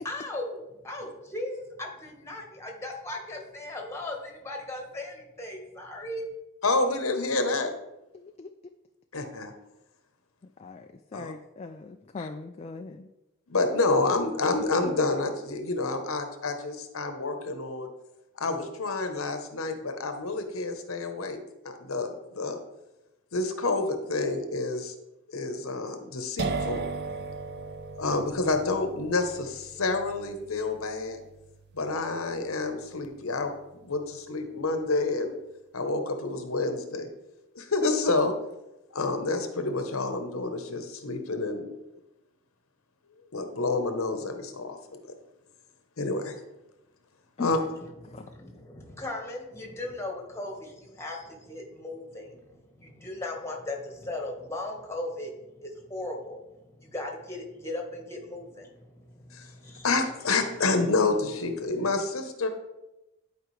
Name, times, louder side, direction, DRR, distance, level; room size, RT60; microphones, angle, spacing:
voice 1, 0.0-6.3 47.6-59.9, left 2 dB, 15° left, 1 dB, 1.4 m, -38 dB
voice 2, 6.6-7.7 9.1-9.5 11.1-11.3 12.2-12.3 13.5-17.9 18.3-21.4 21.6-22.6 23.3-24.9 25.3-26.8 28.0-31.2 31.7-33.5 33.8-35.3 35.7-37.1 37.5-38.3 38.9-41.7 43.3-45.0 46.0-46.4 47.4-47.6 59.3-59.5 59.8-62.5, left 3 dB, 85° left, 7 dB, 0.9 m, -28 dB
voice 3, 8.1-8.5 10.6-13.1 47.4-47.5 48.1-48.2, left 4 dB, 30° left, 6 dB, 0.3 m, -39 dB
sound 1, 26.4-34.0, right 4 dB, 50° right, 0.5 m, -38 dB
11.0 x 4.9 x 3.2 m, 0.96 s
head